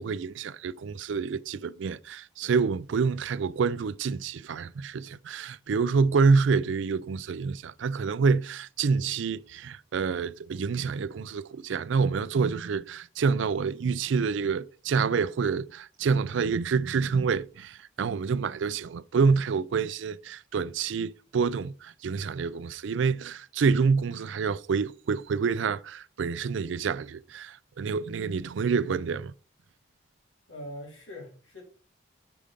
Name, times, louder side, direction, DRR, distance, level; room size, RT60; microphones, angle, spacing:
voice 1, 0.0-29.3, right 5 dB, 75° right, 0.4 m, -27 dB
voice 2, 30.5-31.6, left 1 dB, 80° left, 3.2 m, -42 dB
6.8 x 5.1 x 5.0 m
head